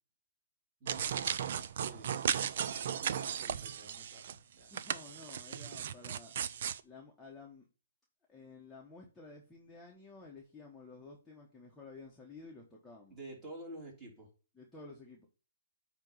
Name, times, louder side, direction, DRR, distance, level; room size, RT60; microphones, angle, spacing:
voice 1, 0.8-2.2 2.6-4.7 13.1-14.3, right 2 dB, 20° right, -2 dB, 3.3 m, -50 dB
sound 1, 0.9-4.4 4.7-6.8, right 8 dB, 55° right, 0.4 m, -36 dB
voice 2, 4.7-6.3 6.8-7.7 8.3-13.2 14.5-15.3, left 3 dB, 5° left, -3 dB, 1.2 m, -52 dB
8.8 x 3.0 x 5.4 m, 0.35 s
hypercardioid pair, 150°, 0 cm